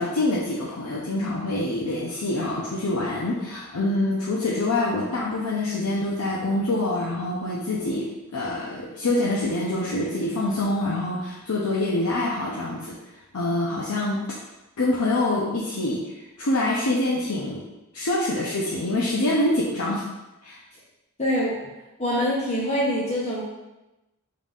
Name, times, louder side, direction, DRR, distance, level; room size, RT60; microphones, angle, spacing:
voice 1, 0.0-13.0 13.3-14.4 14.8-17.6 17.9-20.0 20.4-20.6, left 2 dB, 80° left, -5 dB, 0.7 m, -25 dB
voice 2, 21.2-21.6 22.0-23.4, equal, 30° left, -7 dB, 0.8 m, -24 dB
5.4 x 3.8 x 2.4 m, 1.0 s
head